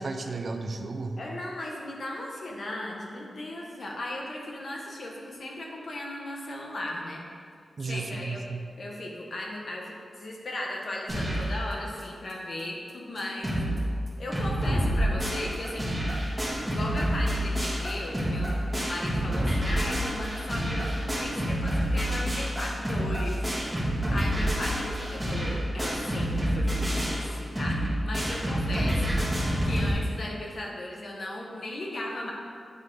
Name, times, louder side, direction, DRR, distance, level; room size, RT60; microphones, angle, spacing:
voice 1, 0.0-1.2 7.8-8.6, right 3 dB, 55° right, 6 dB, 0.5 m, -33 dB
voice 2, 1.2-7.2 7.8-8.4 8.8-13.6 14.2-15.9 16.7-23.4 23.7-29.2 29.6-32.3, left 1 dB, 60° left, -1 dB, 1.0 m, -36 dB
sound 1, 11.1-11.6 12.0-12.1 12.3-12.4 12.9-13.0 13.2-13.8 14.1-29.9, equal, 15° right, 1.5 m, -28 dB
9.2 x 3.5 x 3.3 m, 2.2 s
wide cardioid pair, 110°, 0 cm